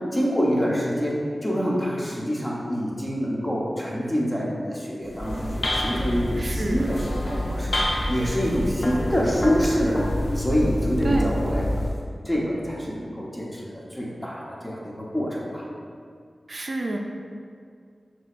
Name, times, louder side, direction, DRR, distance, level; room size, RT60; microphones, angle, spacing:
voice 1, 0.1-10.1 10.3-11.8 12.2-15.6, equal, 15° left, -5 dB, 0.9 m, -26 dB
sound 1, 5.0-12.0, left 1 dB, 70° left, 0.6 m, -27 dB
voice 2, 6.4-6.9 11.0-11.3 16.5-17.0, right 2 dB, 55° right, 1 dB, 0.4 m, -27 dB
6.2 x 2.9 x 2.5 m, 2.2 s
cardioid pair, 50°, 0 cm